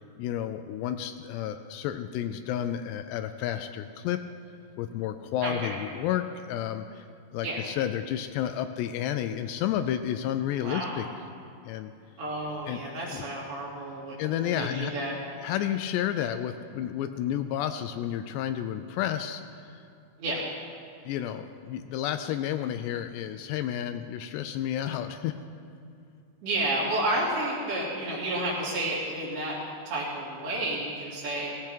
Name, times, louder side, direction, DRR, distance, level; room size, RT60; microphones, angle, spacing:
voice 1, 0.0-4.2 4.8-7.0 7.3-11.1 11.6-11.9 12.7-12.8 13.1-13.2 14.2-14.9 15.4-19.4 21.1-25.4, left 11 dB, 80° left, 9 dB, 2.6 m, -31 dB
voice 2, 5.4-5.7 7.4-7.7 10.6-11.0 12.2-15.2 20.2-20.4 26.4-29.6 29.9-31.6, right 1 dB, 60° right, -5 dB, 4.8 m, -31 dB
17.0 x 16.0 x 4.5 m, 2.6 s
omnidirectional pair, 5.1 m